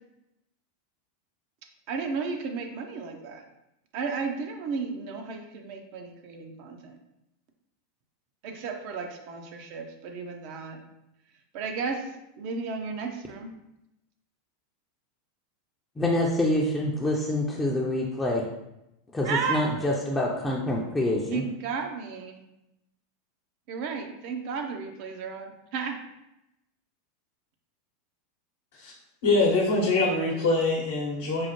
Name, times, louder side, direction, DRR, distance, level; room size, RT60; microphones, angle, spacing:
voice 1, 1.9-3.4 3.9-7.0 8.4-10.8 11.5-12.0 12.4-13.5 19.2-19.6 21.3-22.4 23.7-25.9, right 5 dB, 60° right, 4 dB, 0.6 m, -33 dB
voice 2, 16.0-18.5 19.1-21.4, left 1 dB, 15° left, -3 dB, 0.5 m, -26 dB
voice 3, 29.2-31.5, left 3 dB, 70° left, -3 dB, 0.8 m, -24 dB
4.6 x 2.0 x 3.0 m, 0.89 s
hypercardioid pair, 95°, 0 cm